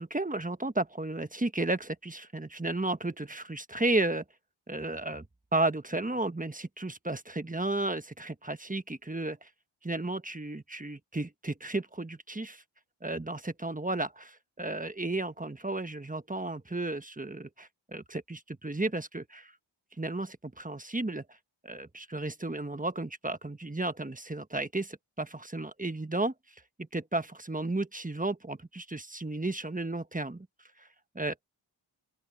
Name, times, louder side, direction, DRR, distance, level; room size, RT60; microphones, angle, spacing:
voice 1, 0.0-4.2 4.7-5.2 5.5-9.5 9.8-12.6 13.0-19.5 20.0-21.2 21.6-26.3 26.9-30.5 30.8-30.9 31.1-31.3, right 2 dB, 15° right, 1.3 m, -33 dB
open air
cardioid pair, 45°, 46 cm